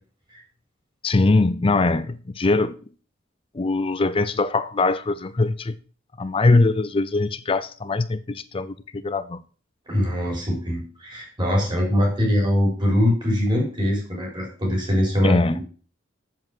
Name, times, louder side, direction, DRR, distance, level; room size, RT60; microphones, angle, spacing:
voice 1, 1.0-2.8 3.5-5.8 6.2-9.4 15.2-15.6, left 3 dB, 30° left, 0.5 m, -22 dB
voice 2, 9.9-15.6, left 1 dB, 25° right, 4.1 m, -22 dB
7.5 x 7.5 x 6.1 m
head